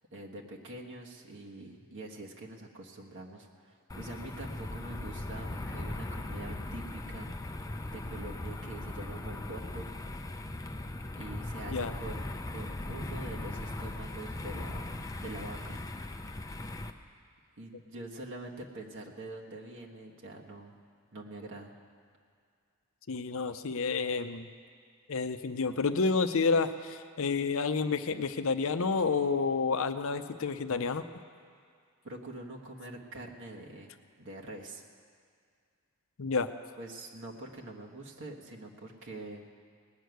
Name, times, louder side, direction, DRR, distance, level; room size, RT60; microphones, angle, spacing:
voice 1, 0.1-9.9 11.2-15.8 17.6-20.7 21.1-21.7 32.0-33.9 34.2-34.8 36.8-39.5, right 2 dB, 55° right, -1 dB, 1.5 m, -45 dB
sound 1, 3.9-16.9, left 1 dB, 15° left, 0.5 m, -39 dB
voice 2, 23.1-24.5 25.1-31.0 36.2-36.5, left 4 dB, 65° left, 10 dB, 0.6 m, -29 dB
19.0 x 6.5 x 9.3 m, 2.2 s
head